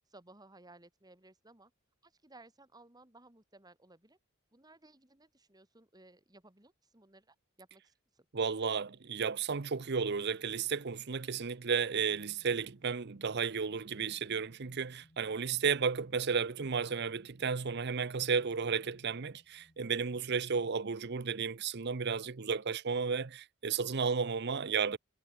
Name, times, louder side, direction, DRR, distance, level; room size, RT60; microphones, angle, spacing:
voice 1, 0.1-1.7 2.0-4.2 4.5-8.3, right 2 dB, 20° right, 2.8 m, -59 dB
voice 2, 8.3-25.0, right 5 dB, 50° right, 0.7 m, -33 dB
sound 1, 11.9-20.7, equal, 30° left, 5.1 m, -67 dB
head